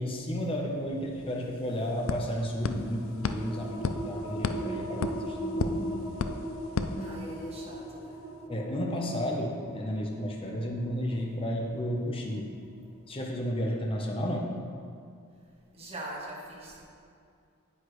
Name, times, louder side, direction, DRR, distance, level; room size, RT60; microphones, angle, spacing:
voice 1, 0.0-6.0 6.8-7.2 8.5-12.5 13.1-14.5, equal, 25° left, -1 dB, 0.9 m, -33 dB
sound 1, 1.0-1.1 1.3-7.7, left 4 dB, 60° left, 0.4 m, -35 dB
sound 2, 2.7-13.9, right 1 dB, 5° left, 1.1 m, -39 dB
voice 2, 7.0-8.3 15.7-16.8, right 1 dB, 25° right, -3 dB, 1.5 m, -42 dB
9.4 x 8.4 x 3.2 m, 2.4 s
head